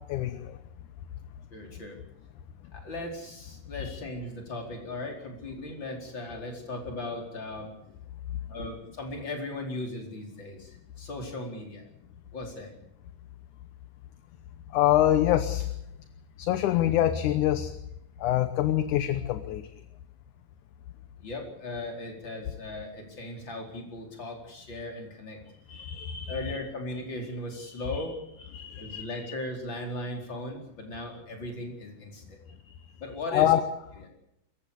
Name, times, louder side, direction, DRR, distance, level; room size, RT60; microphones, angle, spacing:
voice 1, 0.1-0.6 14.7-15.7 16.4-17.7 18.2-19.6 25.7-26.4 27.9-28.0 28.5-29.1 33.3-33.6, left 12 dB, 70° left, 10 dB, 2.3 m, -25 dB
voice 2, 1.5-2.0 2.7-7.7 8.5-11.8 12.3-12.7 21.2-25.4 26.3-28.2 28.8-32.4 33.0-33.5 34.0-34.1, left 2 dB, 35° left, 2 dB, 5.1 m, -37 dB
25.5 x 15.0 x 8.4 m, 0.84 s
omnidirectional pair, 3.9 m